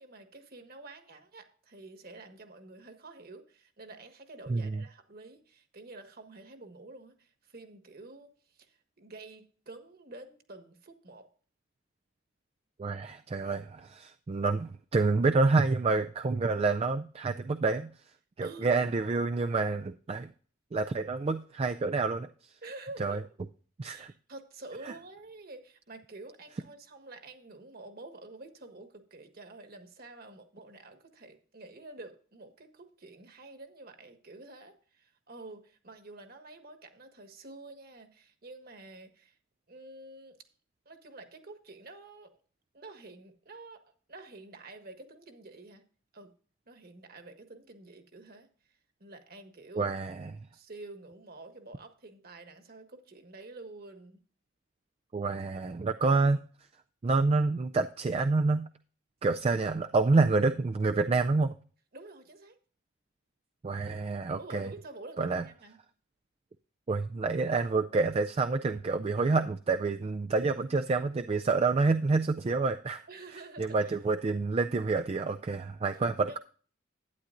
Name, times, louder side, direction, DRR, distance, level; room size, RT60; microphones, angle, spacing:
voice 1, 0.0-11.3 18.4-18.7 22.6-23.3 23.8-39.4 39.7-40.4 40.8-42.3 42.7-43.8 44.1-45.8 46.1-46.3 46.7-48.5 49.0-50.0 50.5-54.2 61.9-62.6 64.4-65.8 73.1-73.8 76.3-76.4, right 2 dB, 45° right, 7 dB, 1.5 m, -48 dB
voice 2, 4.5-4.8 12.8-17.9 18.4-20.3 20.7-22.3 23.0-23.2 23.8-24.1 24.8-24.9 49.8-50.3 55.1-56.4 57.0-58.7 59.2-61.5 63.6-64.7 65.2-65.4 66.9-73.0 73.6-76.4, right 3 dB, 30° right, 8 dB, 0.3 m, -28 dB
11.5 x 9.7 x 2.5 m, 0.41 s
head